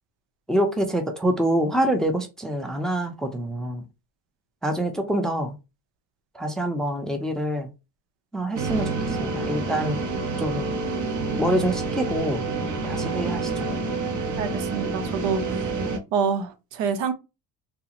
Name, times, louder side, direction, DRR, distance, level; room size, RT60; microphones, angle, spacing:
voice 1, 0.5-3.8 4.6-5.6 6.3-7.7 8.3-10.0 10.4-10.7 11.4-12.4 12.8-13.7, right 1 dB, ahead, 0.5 m, -26 dB
sound 1, 8.5-16.0, right 3 dB, 40° right, 0.8 m, -28 dB
voice 2, 14.4-15.7 16.1-17.1, right 6 dB, 75° right, 0.7 m, -27 dB
3.5 x 2.0 x 2.9 m
cardioid pair, 100°, 44 cm